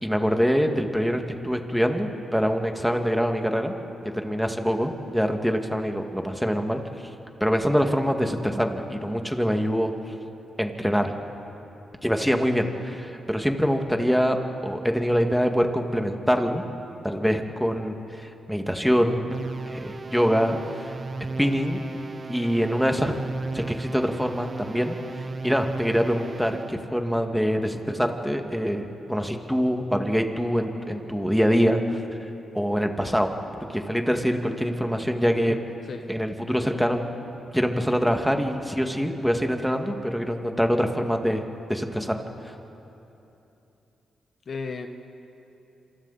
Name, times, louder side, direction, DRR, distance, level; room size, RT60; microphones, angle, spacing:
voice 1, 0.0-3.7 4.0-6.8 7.4-10.1 10.6-11.1 12.0-14.4 14.6-16.6 17.0-19.3 19.7-21.0 21.4-21.8 22.3-23.1 23.5-32.0 32.5-33.3 33.7-35.6 36.1-37.0 37.5-41.4 41.7-42.2 42.4-42.5, equal, ahead, 4 dB, 2.2 m, -24 dB
sound 1, 19.3-26.9, right 3 dB, 40° right, 0.7 m, -35 dB
voice 2, 35.5-36.1 44.5-44.9, left 4 dB, 55° left, 6 dB, 1.2 m, -35 dB
27.5 x 26.5 x 4.3 m, 3.0 s
cardioid pair, 65°, 0 cm